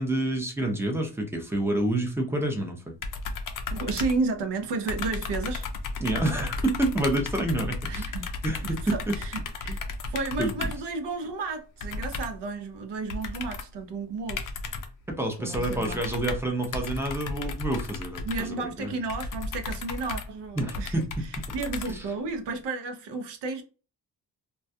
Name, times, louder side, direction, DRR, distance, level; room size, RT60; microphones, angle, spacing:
voice 1, 0.0-2.9 6.0-8.0 8.4-9.2 9.7-9.8 10.4-10.5 15.1-19.0 20.6-21.1 21.9-22.0, right 1 dB, 5° right, 0.5 m, -28 dB
sound 1, 3.0-4.6 4.9-10.9 11.8-12.5 13.1-13.8 14.3-15.0 15.5-22.4, left 3 dB, 50° left, 0.4 m, -34 dB
voice 2, 3.7-5.7 7.8-8.3 8.6-9.8 10.1-14.5 15.4-16.0 18.2-21.1 21.5-23.6, right 3 dB, 75° right, 0.6 m, -32 dB
2.2 x 2.2 x 2.6 m
wide cardioid pair, 120°, 42 cm